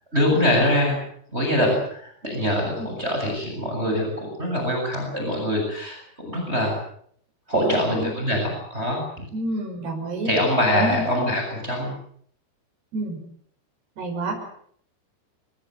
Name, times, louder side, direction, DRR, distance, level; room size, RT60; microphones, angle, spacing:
voice 1, 0.1-1.0 1.3-6.7 7.5-9.3 10.2-11.9, left 1 dB, 15° right, 1 dB, 7.5 m, -24 dB
voice 2, 7.5-8.1 9.3-10.3 10.7-11.0 12.9-13.2 14.0-14.6, right 2 dB, 65° right, 2 dB, 7.9 m, -28 dB
26.5 x 20.0 x 8.2 m, 0.64 s
omnidirectional pair, 5.0 m